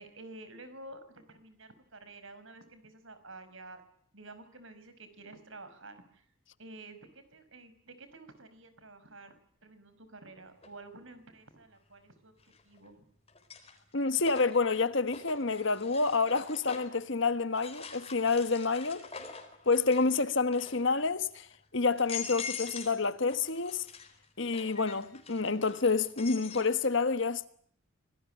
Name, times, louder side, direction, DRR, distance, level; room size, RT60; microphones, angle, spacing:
voice 1, 0.0-3.8 4.1-6.3 6.6-9.3 9.6-13.1 19.2-19.3, right 2 dB, 65° right, 5.2 m, -50 dB
sound 1, 10.6-10.7 12.4-12.9 13.3-17.0 17.5-20.2 20.5-21.0 21.5-21.6 21.9-23.0 23.3-26.7, left 6 dB, 30° left, 4.3 m, -44 dB
voice 2, 13.9-19.1 19.7-21.5 21.7-23.9 24.4-27.5, left 4 dB, 60° left, 1.3 m, -28 dB
26.0 x 19.5 x 10.0 m
head